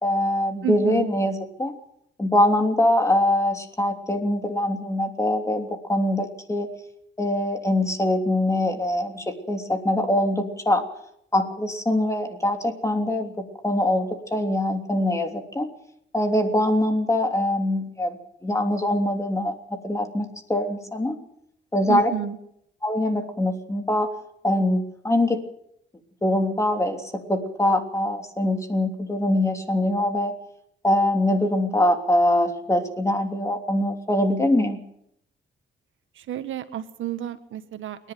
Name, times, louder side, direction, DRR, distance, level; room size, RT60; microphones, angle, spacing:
voice 1, 0.0-1.7 2.2-6.7 7.2-10.8 11.3-15.7 16.1-19.5 19.8-21.1 21.7-22.1 22.8-24.1 24.4-25.4 26.2-27.0 27.3-30.3 30.8-34.8, left 1 dB, 15° left, 5 dB, 3.2 m, -23 dB
voice 2, 0.6-1.1 21.9-22.4 36.2-38.1, right 11 dB, 75° right, 10 dB, 1.5 m, -30 dB
27.5 x 11.0 x 9.3 m, 0.73 s
cardioid pair, 120°, 20 cm